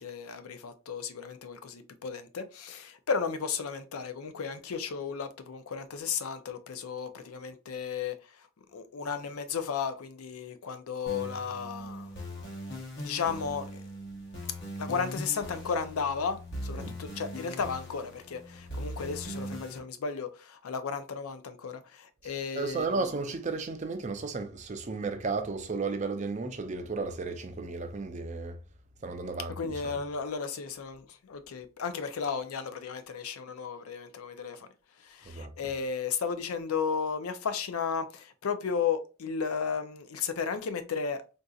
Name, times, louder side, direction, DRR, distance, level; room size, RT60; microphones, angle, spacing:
voice 1, 0.0-12.1 13.0-13.8 14.8-23.0 29.6-34.7 35.0-41.2, left 6 dB, 90° left, 0.5 m, -34 dB
sound 1, 11.1-19.8, equal, 55° left, 1.0 m, -40 dB
voice 2, 22.2-28.6 29.0-30.0 35.3-35.5, right 3 dB, 35° right, 0.4 m, -34 dB
3.8 x 2.6 x 2.3 m
head